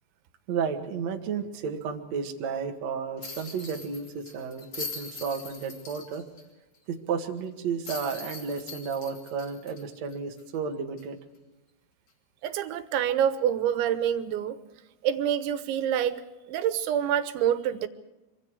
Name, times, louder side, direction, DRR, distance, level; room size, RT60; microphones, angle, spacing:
voice 1, 0.5-6.2 6.9-11.2, right 6 dB, 50° right, 3 dB, 2.5 m, -32 dB
sound 1, 3.2-6.4 6.8-6.9 7.8-10.5 11.0-11.1 13.2-13.4, left 3 dB, 30° left, 2.6 m, -41 dB
voice 2, 12.4-14.6 15.0-16.2 16.5-17.9, right 9 dB, 90° right, 11 dB, 3.5 m, -26 dB
25.5 x 25.0 x 4.8 m, 1.1 s
omnidirectional pair, 5.2 m